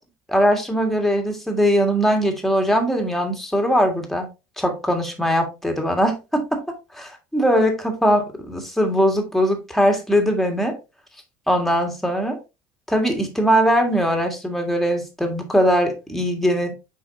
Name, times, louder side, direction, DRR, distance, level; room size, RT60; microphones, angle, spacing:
voice 1, 0.3-4.3 4.6-6.6 6.9-10.7 11.5-12.4 12.9-16.7, equal, ahead, 1.9 m, -20 dB
7.0 x 5.3 x 2.7 m
cardioid pair, 115°, 8 cm